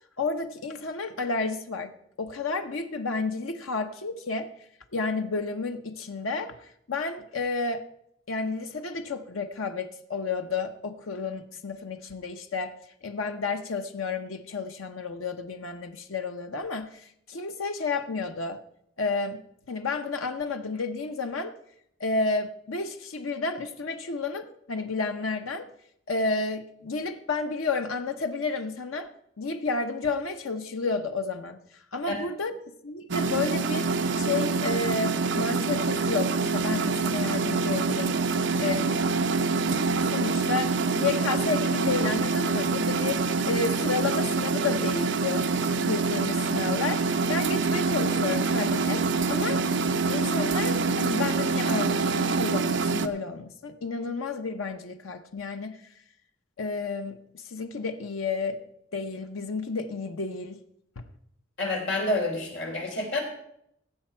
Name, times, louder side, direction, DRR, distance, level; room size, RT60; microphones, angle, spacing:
voice 1, 0.2-1.9 2.2-4.5 4.9-7.8 8.3-12.7 13.0-18.6 19.0-19.4 19.7-21.5 22.0-25.7 26.1-29.1 29.4-31.6 31.9-32.5 32.8-33.9 34.2-38.2 38.6-39.0 40.0-43.2 43.5-45.4 45.8-49.6 50.1-55.8 56.6-58.6 58.9-60.6 61.0-61.1, left 4 dB, 90° left, 7 dB, 0.8 m, -31 dB
sound 1, 33.1-53.1, right 4 dB, 65° right, 0.7 m, -26 dB
voice 2, 61.6-63.2, left 2 dB, 65° left, 0 dB, 3.7 m, -28 dB
16.5 x 7.5 x 4.5 m, 0.74 s
head